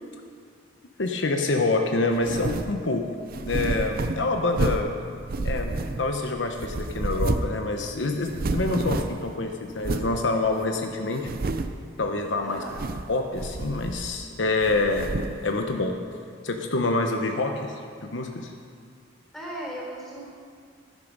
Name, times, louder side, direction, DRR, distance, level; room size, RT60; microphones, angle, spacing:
voice 1, 1.0-3.1 3.4-4.9 5.4-11.3 12.0-12.6 13.1-15.1 15.4-16.0 16.4-17.7 18.0-18.5, left 2 dB, 70° left, 4 dB, 0.9 m, -26 dB
sound 1, 2.2-2.8 3.3-4.9 5.3-6.3 6.6-7.6 7.9-8.0 8.2-9.3 9.8-10.2 10.6-10.7 11.2-11.8 12.6-13.1 13.4-14.2 14.6-15.4, right 2 dB, 50° right, 0.5 m, -29 dB
voice 2, 12.4-12.8 19.3-20.2, right 1 dB, ahead, -5 dB, 3.7 m, -37 dB
12.0 x 11.0 x 5.4 m, 2.2 s
head